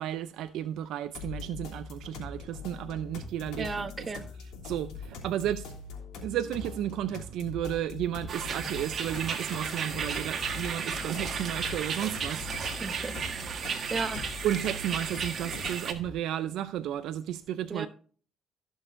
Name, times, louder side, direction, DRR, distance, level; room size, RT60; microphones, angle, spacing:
voice 1, 0.0-4.1 4.6-5.7 6.2-12.5 14.4-17.9, right 11 dB, 80° right, 0.5 m, -33 dB
sound 1, 1.1-16.1, left 4 dB, 85° left, 3.0 m, -42 dB
voice 2, 3.6-4.2 12.8-13.5 13.9-14.2 17.7-17.9, right 4 dB, 35° right, 1.1 m, -34 dB
sound 2, 8.3-15.9, right 6 dB, 50° right, 1.6 m, -34 dB
16.5 x 6.4 x 2.6 m
cardioid pair, 90°, 0 cm